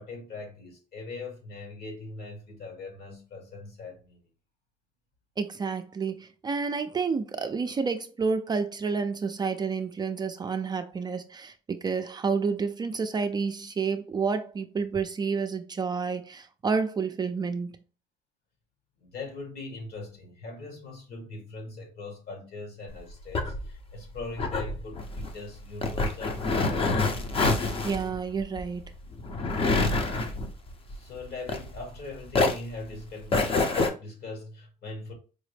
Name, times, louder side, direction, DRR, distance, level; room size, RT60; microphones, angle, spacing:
voice 1, 0.0-4.2 19.0-27.0 30.9-35.1, left 3 dB, 70° left, 1.6 m, -41 dB
voice 2, 5.4-17.7 27.8-28.9, right 5 dB, 25° right, 0.4 m, -29 dB
sound 1, 22.9-32.0 32.3-33.9, left 3 dB, 35° left, 0.6 m, -27 dB
4.8 x 2.0 x 3.2 m
cardioid pair, 110°, 17 cm